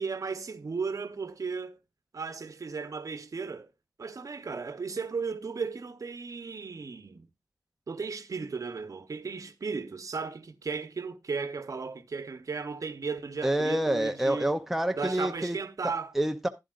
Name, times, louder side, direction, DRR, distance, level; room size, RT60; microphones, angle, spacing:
voice 1, 0.0-1.8 2.1-3.7 4.0-7.3 7.9-14.5 15.0-16.1, right 4 dB, 55° right, 0.9 m, -35 dB
voice 2, 13.4-15.6 15.8-16.5, right 1 dB, 5° right, 0.6 m, -28 dB
11.5 x 10.5 x 2.5 m
wide cardioid pair, 105°, 7 cm